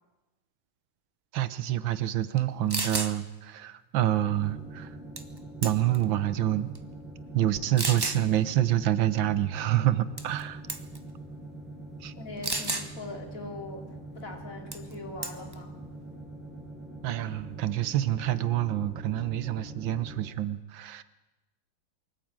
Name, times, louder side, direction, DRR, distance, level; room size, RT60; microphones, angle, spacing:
voice 1, 1.3-4.9 5.6-6.7 7.3-10.6 12.0-12.1 17.0-21.0, right 12 dB, 75° right, 14 dB, 1.7 m, -27 dB
sound 1, 2.4-2.5 2.7-3.1 5.2-5.4 5.6-6.0 6.7-6.8 7.8-8.2 10.2-10.4 10.7-11.0 12.4-12.9 14.7-14.9 15.2-15.5, right 2 dB, 15° right, 0.9 m, -31 dB
sound 2, 4.3-20.3, right 1 dB, ahead, 6.2 m, -44 dB
voice 2, 12.2-13.9 14.1-15.7, left 2 dB, 45° left, 3 dB, 3.3 m, -41 dB
23.5 x 14.5 x 8.9 m, 1.1 s
omnidirectional pair, 2.1 m